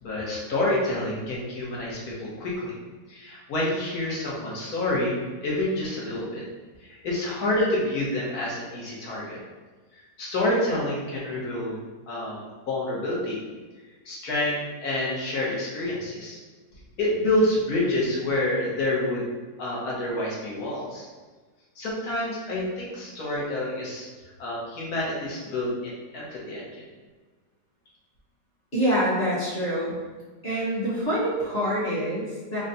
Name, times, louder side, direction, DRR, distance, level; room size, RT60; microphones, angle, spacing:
voice 1, 0.0-2.7 3.1-6.4 6.8-9.4 10.2-11.8 12.1-13.4 14.0-16.4 17.0-19.2 19.6-21.1 21.8-24.1 24.4-26.7, left 1 dB, 70° left, -5 dB, 1.5 m, -28 dB
voice 2, 28.7-30.0 30.4-32.6, equal, 40° left, -9 dB, 1.3 m, -26 dB
4.0 x 2.2 x 3.9 m, 1.3 s
omnidirectional pair, 1.7 m